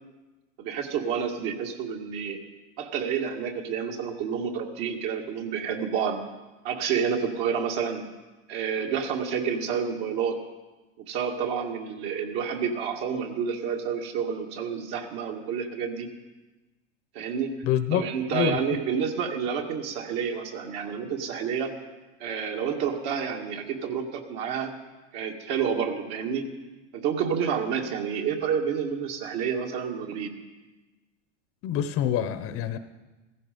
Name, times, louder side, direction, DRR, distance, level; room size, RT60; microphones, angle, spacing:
voice 1, 0.6-2.4 2.8-6.2 6.6-8.0 8.5-10.4 11.1-16.1 17.1-17.6 17.9-21.7 22.2-24.7 25.1-26.5 26.9-30.3, right 7 dB, 50° right, 3 dB, 2.2 m, -29 dB
voice 2, 17.6-18.1 18.3-18.6 31.6-32.8, left 10 dB, 35° left, 12 dB, 0.9 m, -26 dB
15.5 x 15.0 x 5.3 m, 1.2 s
hypercardioid pair, 120°, 38 cm